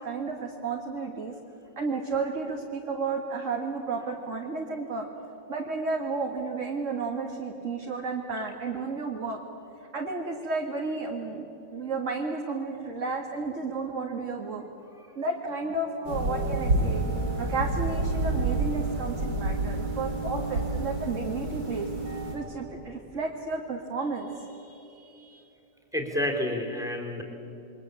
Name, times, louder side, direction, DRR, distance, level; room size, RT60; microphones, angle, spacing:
voice 1, 0.0-1.3 1.8-5.1 5.5-9.4 9.9-11.5 11.7-14.7 15.2-21.9 22.3-25.4, right 3 dB, 45° right, 0 dB, 2.3 m, -32 dB
sound 1, 16.0-22.4, right 2 dB, 85° right, 6.2 m, -29 dB
voice 2, 25.9-27.2, left 1 dB, ahead, 2 dB, 3.8 m, -29 dB
28.0 x 23.5 x 8.4 m, 2.9 s
omnidirectional pair, 1.9 m